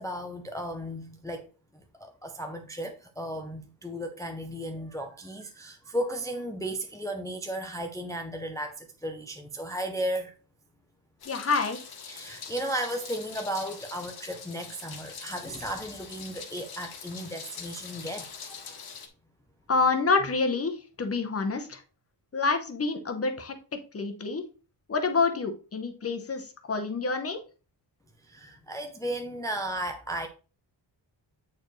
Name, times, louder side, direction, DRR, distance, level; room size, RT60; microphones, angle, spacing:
voice 1, 0.0-1.5 2.0-10.3 12.1-18.8 28.3-30.3, right 1 dB, 10° left, 0.4 m, -35 dB
Meow, 11.2-19.1, left 6 dB, 55° left, 1.1 m, -43 dB
voice 2, 11.3-11.8 19.7-21.8 22.3-23.5 23.9-24.4 24.9-27.4, left 4 dB, 30° left, 0.8 m, -27 dB
8.3 x 4.5 x 3.1 m
wide cardioid pair, 175°, 45 cm